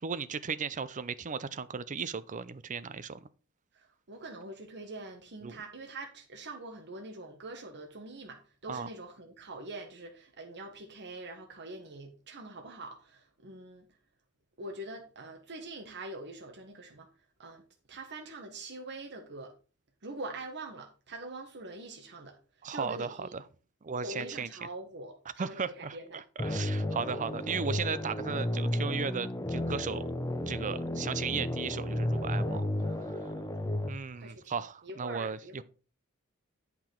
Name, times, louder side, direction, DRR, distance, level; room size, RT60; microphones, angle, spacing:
voice 1, 0.0-3.3 5.4-5.6 8.7-8.9 22.6-23.4 23.8-24.5 25.4-30.1 30.5-32.6 33.0-33.3 33.9-35.6, right 5 dB, 35° right, 0.5 m, -36 dB
voice 2, 3.7-13.9 14.6-17.1 17.4-17.6 17.9-19.5 20.0-23.4 24.0-26.2 34.1-34.5 34.8-35.6, right 2 dB, 50° right, 1.4 m, -44 dB
Dark Scary Sound, 26.4-33.9, left 1 dB, 15° left, 0.7 m, -33 dB
8.6 x 5.9 x 4.5 m
head